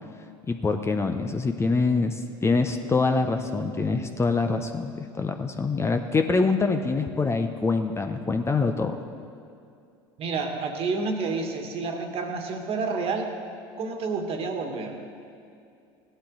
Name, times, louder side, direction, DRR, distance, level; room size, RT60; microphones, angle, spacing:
voice 1, 0.5-9.0, left 4 dB, 20° left, 6 dB, 0.7 m, -25 dB
voice 2, 10.2-13.3 13.8-15.0, right 4 dB, 50° right, 4 dB, 1.7 m, -29 dB
16.0 x 11.0 x 3.9 m, 2.5 s
hypercardioid pair, 85°, 13 cm